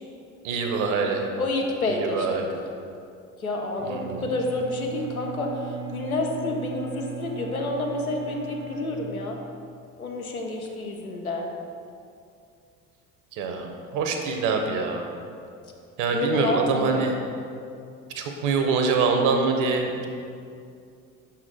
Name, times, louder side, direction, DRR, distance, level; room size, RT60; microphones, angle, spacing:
voice 1, 0.4-1.3 1.9-2.5 3.8-4.2 13.3-15.1 16.0-17.1 18.2-20.1, right 4 dB, 45° right, 3 dB, 0.8 m, -25 dB
voice 2, 1.4-2.4 3.4-9.4 10.0-11.5 16.1-17.1, left 2 dB, 90° left, 1 dB, 0.6 m, -29 dB
Bowed string instrument, 3.7-9.8, right 5 dB, 80° right, 0.6 m, -38 dB
6.0 x 4.3 x 3.8 m, 2.4 s
figure-of-eight pair, 55°, 42 cm